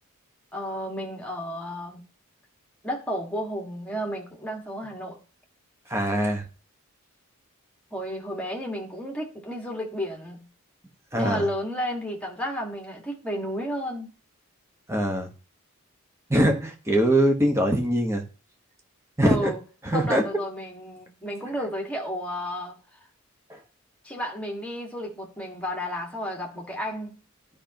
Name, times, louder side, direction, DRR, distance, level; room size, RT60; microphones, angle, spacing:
voice 1, 0.5-2.0 2.8-5.2 7.9-10.5 11.2-14.1 19.2-19.6 19.9-23.1 24.0-27.2, equal, 5° left, 1.8 m, -32 dB
voice 2, 5.9-6.5 11.1-11.4 14.9-15.3 16.3-18.2 19.2-19.5 19.9-20.2, right 1 dB, 15° right, 1.3 m, -22 dB
12.5 x 5.3 x 2.9 m
head